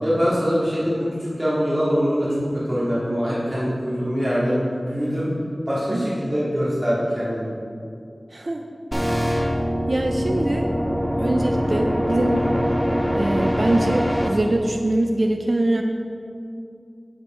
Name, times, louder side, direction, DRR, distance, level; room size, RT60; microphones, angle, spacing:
voice 1, 0.0-1.1 1.4-5.3 5.7-7.7 11.3-11.4 12.4-12.6, equal, 25° right, -9 dB, 2.3 m, -23 dB
voice 2, 8.3-8.6 9.9-10.7 11.2-12.4 13.1-15.8, right 1 dB, 55° right, 3 dB, 0.6 m, -23 dB
sound 1, 8.9-14.3, equal, 5° right, 1.0 m, -23 dB
8.9 x 7.6 x 4.4 m, 2.4 s
wide cardioid pair, 50°, 0 cm